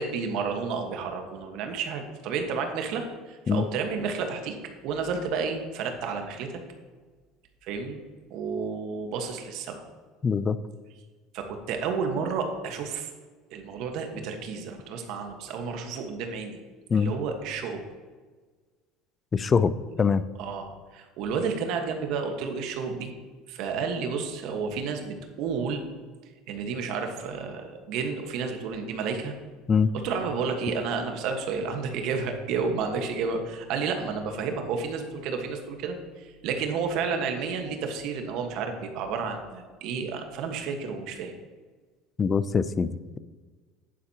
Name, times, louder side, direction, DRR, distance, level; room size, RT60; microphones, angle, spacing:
voice 1, 0.0-4.6 4.8-6.6 7.6-8.0 8.3-9.8 11.3-13.1 13.5-16.6 16.9-17.8 20.4-23.1 23.5-25.8 26.5-29.3 29.9-41.3, right 5 dB, 65° right, 5 dB, 1.4 m, -31 dB
voice 2, 10.2-10.6 16.9-17.1 19.3-19.7 20.0-20.2 29.7-29.9 42.2-43.2, left 6 dB, 25° left, 15 dB, 0.4 m, -23 dB
10.0 x 9.5 x 2.9 m, 1.4 s
supercardioid pair, 110°, 0 cm